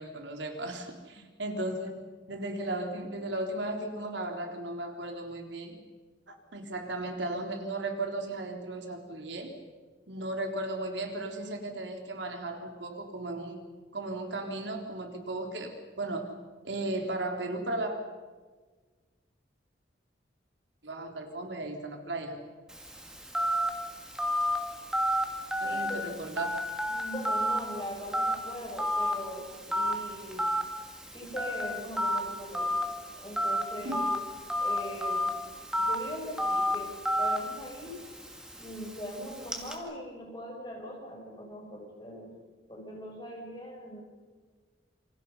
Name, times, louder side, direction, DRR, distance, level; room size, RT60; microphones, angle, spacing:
voice 1, 0.0-1.9 2.3-5.8 6.3-9.5 10.1-13.6 13.9-16.3 16.6-18.0 20.8-22.4 25.6-26.5 33.8-34.0, right 2 dB, 80° right, 3 dB, 3.6 m, -35 dB
Telephone, 22.7-39.7, equal, 5° right, 2.6 m, -32 dB
voice 2, 25.6-26.2 26.9-30.5 31.1-34.1 34.6-35.5 35.8-36.9 37.2-38.0 38.6-42.3 42.7-44.0, equal, 25° left, -1 dB, 6.9 m, -41 dB
28.0 x 26.5 x 5.6 m, 1.4 s
head